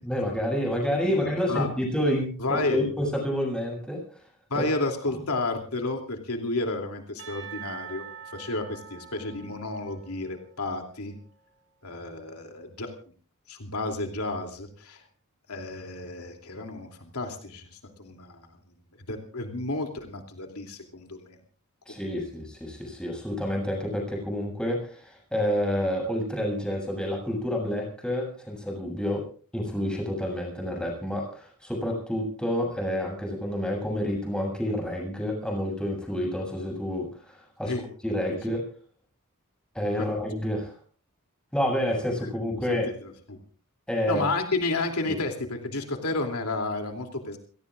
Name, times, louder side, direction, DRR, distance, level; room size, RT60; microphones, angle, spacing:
voice 1, 0.0-4.0 4.5-4.7 21.9-29.2 29.5-37.7 38.0-38.6 39.7-40.7 41.5-42.9 43.9-44.2 45.1-45.2, equal, 5° left, 0 dB, 7.6 m, -29 dB
voice 2, 1.1-1.7 2.4-2.9 4.5-8.1 8.3-11.1 11.8-12.9 13.5-15.0 15.5-18.5 19.1-21.4 37.6-37.8 42.7-43.4 44.1-47.4, left 2 dB, 85° left, 4 dB, 2.9 m, -31 dB
Percussion / Church bell, 7.2-11.4, right 8 dB, 60° right, 5.5 m, -45 dB
29.5 x 17.5 x 2.5 m, 0.41 s
head